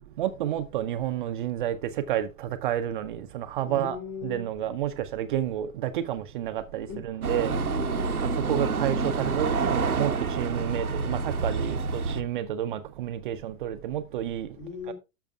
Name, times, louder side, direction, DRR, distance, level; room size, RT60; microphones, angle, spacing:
voice 1, 0.2-7.5 8.3-14.5 14.9-15.0, right 11 dB, 35° right, 0.6 m, -30 dB
voice 2, 3.6-4.4 6.9-8.3 14.6-14.9, left 5 dB, 35° left, 3.2 m, -39 dB
sound 1, 7.2-12.2, right 4 dB, 85° right, 0.8 m, -28 dB
13.0 x 6.8 x 2.3 m
figure-of-eight pair, 105°, 43 cm